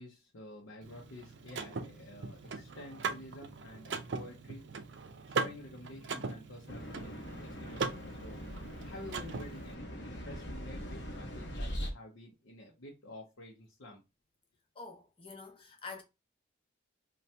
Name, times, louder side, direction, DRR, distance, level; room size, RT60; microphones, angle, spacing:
voice 1, 0.0-4.6 5.3-7.2 7.6-8.4 8.8-14.0, left 1 dB, 90° left, 0.7 m, -49 dB
Car / Mechanisms, 0.8-9.7, right 4 dB, 65° right, 0.4 m, -40 dB
sound 1, 6.7-11.9, equal, 60° left, 0.9 m, -42 dB
voice 2, 14.8-16.0, left 4 dB, 25° left, 0.6 m, -46 dB
2.7 x 2.2 x 3.1 m
head